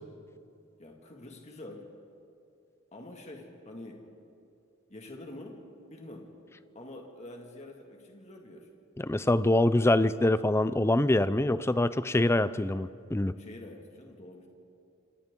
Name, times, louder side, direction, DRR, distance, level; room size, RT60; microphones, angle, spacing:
voice 1, 0.8-1.9 2.9-4.1 4.9-5.6 5.9-6.3 6.7-8.7 13.4-14.5, left 1 dB, 35° left, 1 dB, 2.1 m, -46 dB
voice 2, 9.0-13.3, left 1 dB, 10° left, 14 dB, 0.4 m, -25 dB
27.5 x 26.5 x 3.8 m, 2.5 s
head